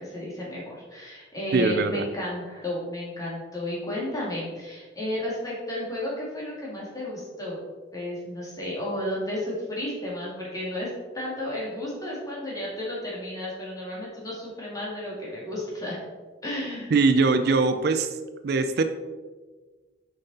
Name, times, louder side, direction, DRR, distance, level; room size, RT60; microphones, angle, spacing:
voice 1, 0.0-7.6 7.9-10.9 11.1-16.0 16.4-17.0, left 1 dB, 20° left, -5 dB, 2.3 m, -33 dB
voice 2, 1.5-2.0 16.9-18.1 18.4-18.8, right 4 dB, 55° right, 9 dB, 0.4 m, -21 dB
7.1 x 5.4 x 4.2 m, 1.4 s
head